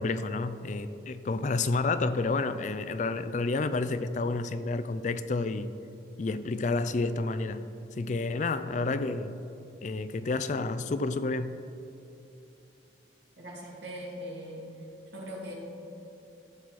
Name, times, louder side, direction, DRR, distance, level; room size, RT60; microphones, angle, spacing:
voice 1, 0.0-5.7 6.2-7.6 8.0-9.4 9.8-11.6, left 3 dB, 45° left, 0.4 m, -30 dB
voice 2, 13.4-14.7 15.1-15.5, equal, 85° right, 2.5 m, -40 dB
14.5 x 6.3 x 4.1 m
head